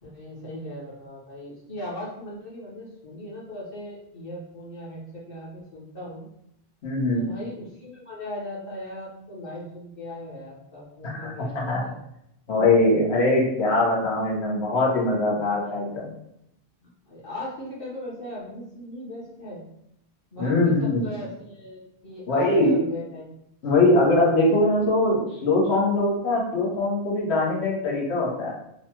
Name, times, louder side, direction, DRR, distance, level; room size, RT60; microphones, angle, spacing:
voice 1, 0.0-6.2 7.1-11.9 16.8-19.6 20.3-23.2, left 1 dB, 60° left, -6 dB, 1.2 m, -38 dB
voice 2, 6.8-7.3 11.0-11.8 12.5-16.1 20.4-21.0 22.3-22.8 23.6-28.5, left 2 dB, 85° left, -4 dB, 1.2 m, -22 dB
3.1 x 2.2 x 2.8 m, 0.78 s
omnidirectional pair, 1.1 m